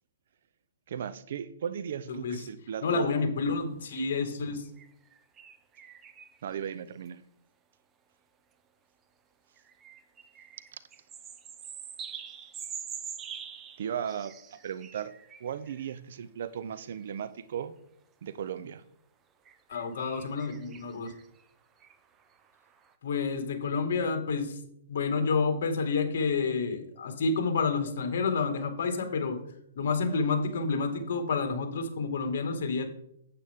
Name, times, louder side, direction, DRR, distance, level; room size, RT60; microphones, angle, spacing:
voice 1, 0.9-3.1 6.4-7.2 13.8-15.1 15.4-17.7 18.2-18.8, right 8 dB, 60° right, 15 dB, 0.6 m, -36 dB
voice 2, 2.1-2.4 2.8-4.7 19.7-21.1 23.0-24.6 24.9-29.4 29.8-32.9, left 4 dB, 60° left, 6 dB, 1.9 m, -29 dB
sound 1, 3.9-4.0 4.8-6.5 7.1-7.2 9.6-15.9 16.9-17.0 17.5-17.6 19.4-22.9, right 8 dB, 20° right, 0.6 m, -45 dB
8.9 x 8.2 x 3.6 m, 0.72 s
hypercardioid pair, 150°, 0 cm